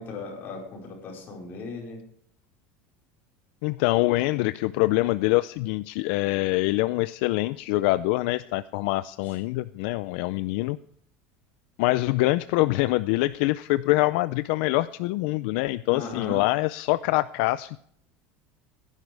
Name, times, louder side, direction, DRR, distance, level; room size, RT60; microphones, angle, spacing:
voice 1, 0.0-2.0 9.2-9.4 15.9-16.4, left 3 dB, 35° left, -1 dB, 4.9 m, -37 dB
voice 2, 3.6-10.8 11.8-17.8, left 19 dB, 70° left, 14 dB, 0.4 m, -24 dB
17.5 x 10.5 x 3.4 m, 0.65 s
cardioid pair, 160°, 6 cm